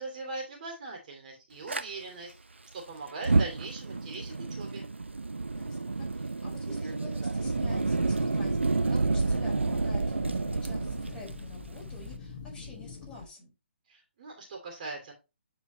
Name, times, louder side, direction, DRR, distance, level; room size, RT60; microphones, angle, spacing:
voice 1, 0.0-2.3 2.7-4.9 13.9-15.1, right 3 dB, 45° right, 1 dB, 2.9 m, -40 dB
Fire, 1.7-1.8 3.1-12.2, right 3 dB, 90° right, 0.7 m, -29 dB
voice 2, 5.5-13.5, left 2 dB, 10° left, -5 dB, 4.7 m, -49 dB
sound 1, 7.4-13.3, left 4 dB, 40° left, 1.4 m, -44 dB
9.8 x 4.6 x 3.1 m, 0.27 s
figure-of-eight pair, 140°, 6 cm